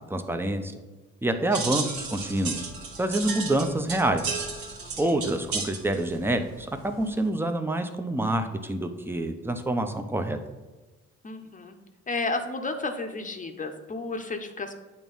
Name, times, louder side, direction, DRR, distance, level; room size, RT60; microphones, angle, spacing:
voice 1, 0.1-0.7 1.2-2.7 3.0-4.3 5.0-10.4, right 1 dB, 5° right, 6 dB, 0.7 m, -27 dB
sound 1, 1.5-7.3, right 4 dB, 70° right, 1.5 m, -34 dB
voice 2, 11.2-11.8 12.1-14.7, left 3 dB, 25° left, 6 dB, 0.8 m, -32 dB
8.8 x 3.0 x 5.5 m, 1.2 s
cardioid pair, 90°, 30 cm